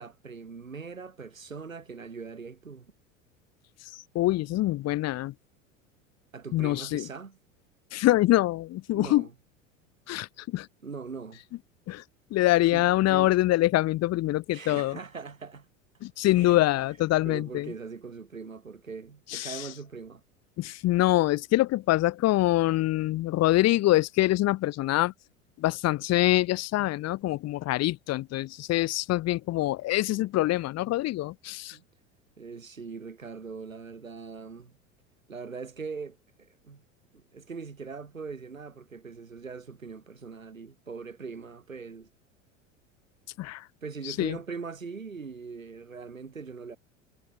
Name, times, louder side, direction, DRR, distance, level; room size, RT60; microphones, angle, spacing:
voice 1, 0.0-2.9 6.3-7.4 8.9-9.3 10.8-11.4 12.7-13.3 14.5-15.7 16.3-16.7 17.2-20.2 31.7-31.8 32.4-34.7 35.3-36.8 37.1-42.1 43.8-46.8, right 5 dB, 90° right, 5.6 m, -41 dB
voice 2, 4.1-5.3 6.5-7.0 7.9-9.2 10.1-10.7 11.9-12.0 12.3-15.0 16.0-17.7 19.3-19.6 20.6-25.1 25.6-31.8 43.4-43.6 44.0-44.4, left 16 dB, 40° left, 1.5 m, -25 dB
figure-of-eight pair, 80°, 39 cm